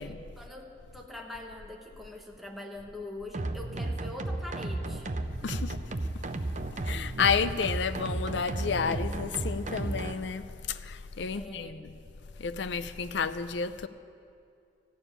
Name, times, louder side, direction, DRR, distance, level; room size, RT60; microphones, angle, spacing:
voice 1, 0.0-5.1 5.4-5.8 11.3-11.9, left 1 dB, ahead, 0 dB, 1.1 m, -43 dB
sound 1, 3.3-10.1, right 2 dB, 40° right, 0.7 m, -33 dB
voice 2, 6.9-11.9 12.4-13.9, left 6 dB, 70° left, 13 dB, 0.5 m, -31 dB
14.0 x 7.0 x 9.8 m, 2.5 s
head